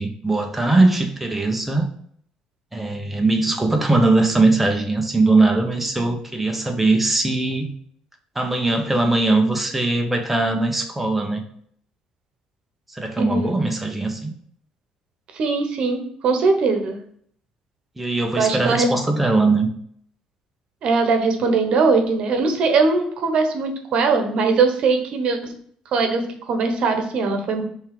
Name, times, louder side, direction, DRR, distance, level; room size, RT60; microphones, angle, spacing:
voice 1, 0.0-1.8 2.7-7.7 8.3-11.4 12.9-14.3 18.0-19.7, right 2 dB, 5° right, 3 dB, 0.9 m, -20 dB
voice 2, 13.2-13.6 15.3-17.0 18.4-18.9 20.8-25.5 25.9-27.6, right 4 dB, 55° right, 5 dB, 1.2 m, -20 dB
5.4 x 3.6 x 4.9 m, 0.63 s
cardioid pair, 140°, 2 cm